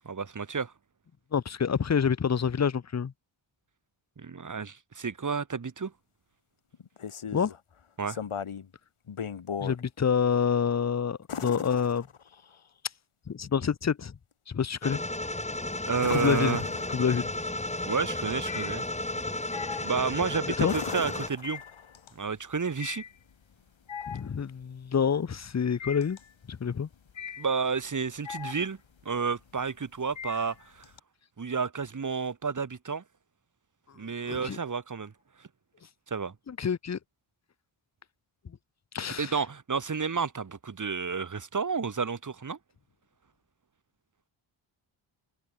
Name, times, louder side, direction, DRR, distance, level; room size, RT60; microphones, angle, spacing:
voice 1, 0.0-0.7 4.2-5.9 8.0-8.2 15.8-16.6 17.8-18.8 19.8-21.6 22.1-23.0 27.4-28.8 29.0-30.6 31.4-33.0 34.0-35.1 36.1-36.3 39.2-42.6, right 5 dB, 35° right, 1.6 m, -31 dB
voice 2, 1.3-3.1 7.3-7.5 9.6-12.1 13.3-14.1 14.5-15.0 16.1-16.6 16.9-17.3 20.6-20.7 24.1-26.2 26.5-26.9 34.2-34.6 36.5-37.0 38.9-39.3, left 7 dB, 35° left, 0.7 m, -27 dB
sound 1, 6.7-7.6 8.1-8.7 9.1-9.8 11.3-12.5 16.0-17.3 19.8-20.1 20.6-22.0 24.2-24.3, left 7 dB, 85° left, 5.6 m, -38 dB
sound 2, 14.8-21.3, left 2 dB, 15° left, 2.1 m, -33 dB
sound 3, 15.5-16.1 16.5-31.0, left 7 dB, 65° left, 2.1 m, -43 dB
wide cardioid pair, 80°, 49 cm